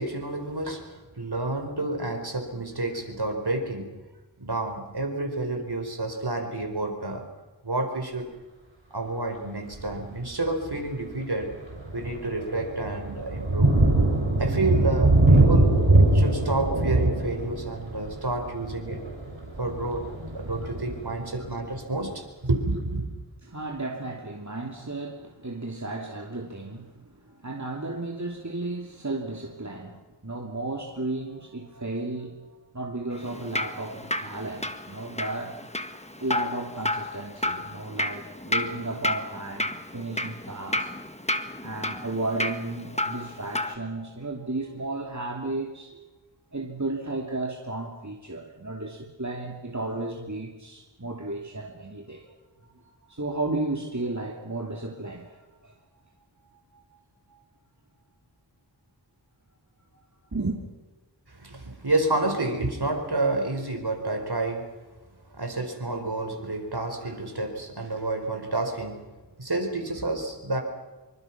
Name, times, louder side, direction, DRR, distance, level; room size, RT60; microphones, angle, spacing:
voice 1, 0.0-3.9 4.4-7.2 7.6-8.3 8.9-11.5 11.9-13.8 14.4-15.8 16.1-19.0 19.6-20.0 20.3-23.0 61.3-64.7 65.3-69.0 69.4-70.6, right 2 dB, 60° right, 5 dB, 4.5 m, -29 dB
Thunder, 9.7-10.1 10.6-10.8 11.2-21.8, right 2 dB, 90° right, 6.3 m, -23 dB
voice 2, 23.5-35.6 36.2-40.9 41.6-46.0 46.5-52.3 52.7-55.8 56.7-57.0 57.3-57.4 60.3-60.6, right 2 dB, 40° right, 1 dB, 2.8 m, -34 dB
Drip, 33.1-43.7, left 1 dB, 15° left, 1.6 m, -32 dB
26.5 x 24.5 x 6.0 m, 1.2 s
wide cardioid pair, 45°, 44 cm